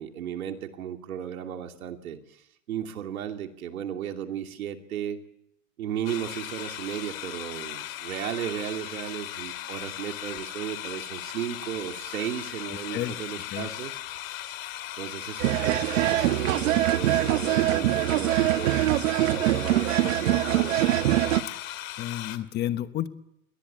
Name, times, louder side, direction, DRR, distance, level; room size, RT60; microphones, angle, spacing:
voice 1, 0.0-2.4 2.7-5.2 5.8-14.0 15.0-15.8 16.1-18.9 19.2-21.0, right 9 dB, 85° right, 5 dB, 2.8 m, -35 dB
sound 1, 6.0-22.4, left 13 dB, 70° left, 2.3 m, -37 dB
voice 2, 12.7-13.1 13.5-13.7 21.5-21.6 22.0-23.1, left 12 dB, 25° left, 12 dB, 1.1 m, -31 dB
sound 2, 15.4-21.4, right 14 dB, 70° right, 1.2 m, -23 dB
22.0 x 19.0 x 8.8 m, 0.81 s
supercardioid pair, 145°, 41 cm